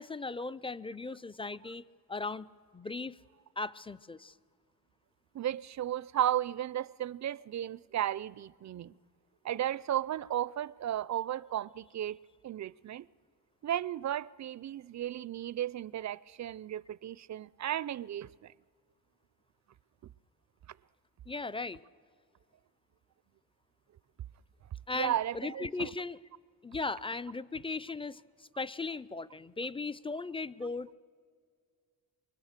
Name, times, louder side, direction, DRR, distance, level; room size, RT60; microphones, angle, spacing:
voice 1, 0.0-1.8 2.1-3.2 3.6-4.3 21.3-21.8 24.9-26.2 26.6-30.9, left 3 dB, 15° left, 0.5 m, -37 dB
voice 2, 5.3-8.9 9.4-12.2 12.4-13.1 13.6-18.5 24.9-25.9, right 11 dB, 45° right, 0.5 m, -34 dB
24.5 x 23.5 x 6.6 m
cardioid pair, 90°, 38 cm